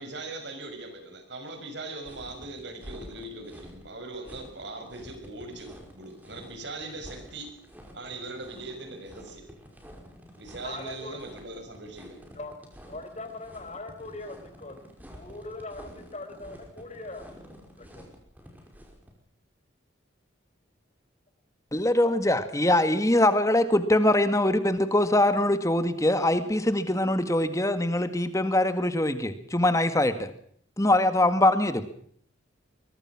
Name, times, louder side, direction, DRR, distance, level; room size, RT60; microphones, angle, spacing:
voice 1, 0.0-7.5 7.9-9.4 10.4-12.2, right 2 dB, 60° right, 6 dB, 6.2 m, -40 dB
sound 1, 2.0-19.1, equal, 10° right, 5.4 m, -49 dB
voice 2, 10.6-11.2 12.3-12.6 12.8-14.8 15.1-17.3 17.9-18.0, left 2 dB, 35° left, 7 dB, 4.5 m, -40 dB
voice 3, 21.7-30.3 30.8-31.8, left 1 dB, 15° left, 10 dB, 1.9 m, -23 dB
23.0 x 23.0 x 6.1 m, 0.62 s
head